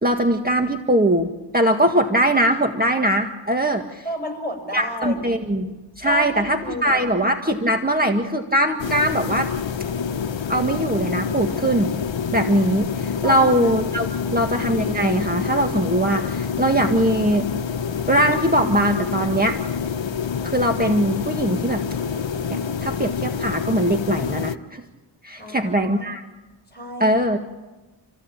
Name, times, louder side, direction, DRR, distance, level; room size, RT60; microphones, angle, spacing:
voice 1, 0.0-4.0 4.7-5.7 6.0-9.5 10.5-12.0 12.3-17.5 18.1-19.6 20.4-21.8 22.5-24.8 25.2-26.2 27.0-27.4, right 1 dB, 20° right, 4 dB, 1.9 m, -21 dB
voice 2, 4.0-5.2 6.0-7.1 13.2-13.5 14.1-14.4 25.4-26.1 26.7-27.2, equal, 20° left, 4 dB, 7.0 m, -32 dB
sound 1, 8.8-24.6, left 6 dB, 70° left, 1.0 m, -27 dB
28.0 x 16.5 x 8.8 m, 1.1 s
wide cardioid pair, 55°, 46 cm